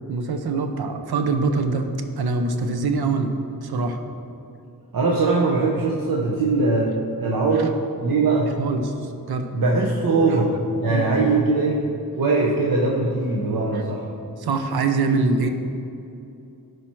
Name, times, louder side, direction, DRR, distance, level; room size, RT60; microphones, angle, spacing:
voice 1, 0.1-1.9 2.2-3.3 3.6-4.0 7.6-7.7 8.6-9.5 10.3-10.4 10.9-11.2 13.7-13.8 14.4-15.5, right 4 dB, 90° right, 6 dB, 0.8 m, -24 dB
voice 2, 4.9-6.9 7.2-8.6 9.5-11.9 12.2-14.1, right 3 dB, 65° right, -2 dB, 0.9 m, -21 dB
12.0 x 4.9 x 4.5 m, 2.7 s
wide cardioid pair, 105°, 37 cm